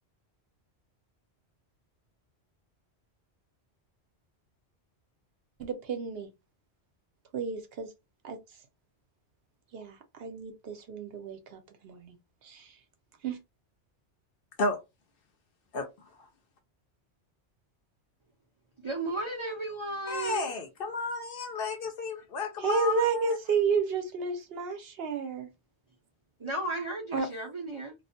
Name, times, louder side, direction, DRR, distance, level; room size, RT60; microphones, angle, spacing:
voice 1, 5.6-6.3 7.3-7.9 8.2-8.4 9.7-12.2 12.4-12.7 13.2-13.4 22.6-25.5 27.1-27.3, right 5 dB, 70° right, 0.8 m, -31 dB
voice 2, 18.8-20.5 26.4-27.9, right 2 dB, 40° right, 0.4 m, -34 dB
voice 3, 20.1-23.4, left 3 dB, 65° left, 0.8 m, -32 dB
2.3 x 2.1 x 2.6 m
omnidirectional pair, 1.1 m